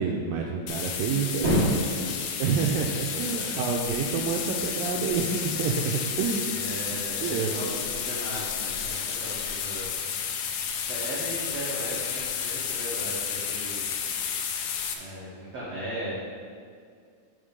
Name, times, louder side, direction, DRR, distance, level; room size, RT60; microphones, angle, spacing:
voice 1, 0.0-1.5 2.4-6.6 6.9-7.6, right 6 dB, 90° right, 1 dB, 2.0 m, -28 dB
sound 1, 0.7-14.9, left 7 dB, 90° left, 1.8 m, -31 dB
voice 2, 1.4-2.2 2.6-2.8 3.1-3.5 6.4-10.0 10.4-13.9 14.3-14.6 14.9-16.2, equal, 60° right, -7 dB, 1.7 m, -34 dB
8.8 x 3.6 x 6.8 m, 2.1 s
omnidirectional pair, 4.6 m